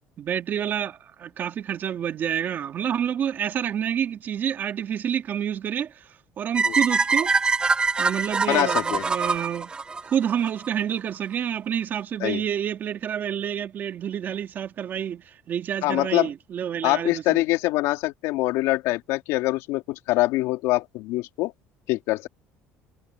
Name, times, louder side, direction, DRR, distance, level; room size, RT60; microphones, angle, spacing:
voice 1, 0.2-6.1 6.4-7.3 8.0-9.7 10.0-17.4, right 9 dB, 40° right, 2.4 m, -28 dB
sound 1, 6.5-10.7, right 4 dB, 20° right, 1.3 m, -24 dB
voice 2, 8.5-9.0 12.2-12.4 15.8-16.3 16.8-21.5 21.9-22.3, left 19 dB, 75° left, 3.4 m, -24 dB
cardioid pair, 135°, 5 cm